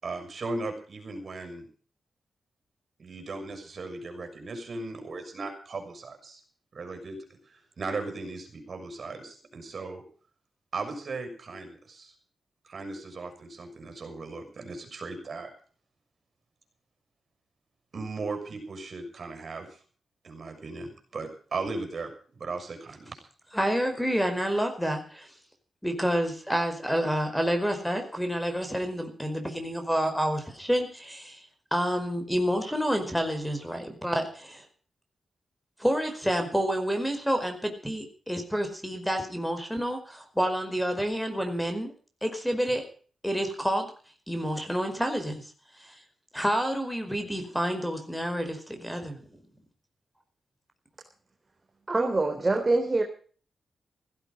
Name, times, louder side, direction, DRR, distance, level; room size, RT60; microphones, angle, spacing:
voice 1, 0.0-1.7 3.0-6.4 6.7-10.0 10.7-12.1 12.6-15.5 17.9-19.8 20.2-23.2, right 3 dB, 55° right, 6 dB, 6.5 m, -37 dB
voice 2, 23.5-25.3 25.8-31.4 31.7-34.6 35.8-41.9 42.2-42.8 43.2-43.9 44.3-45.5 45.8-46.0 46.3-49.2, equal, 5° left, 7 dB, 5.0 m, -29 dB
voice 3, 51.9-53.0, right 2 dB, 30° right, 3 dB, 3.8 m, -24 dB
16.5 x 16.0 x 5.1 m, 0.42 s
cardioid pair, 75°, 0 cm